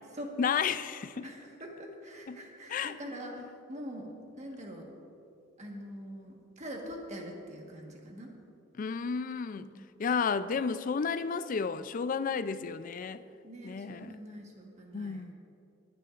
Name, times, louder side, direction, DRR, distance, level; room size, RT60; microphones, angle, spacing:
voice 1, 0.4-1.3 2.3-2.4 2.7-2.9 8.8-9.7 10.0-13.2 13.6-14.2 14.9-15.3, left 5 dB, 45° left, 0.3 m, -32 dB
voice 2, 1.1-4.1 4.4-4.9 5.6-8.3 9.5-9.9 13.4-15.3, equal, 35° right, 1.4 m, -44 dB
21.0 x 9.6 x 2.5 m
head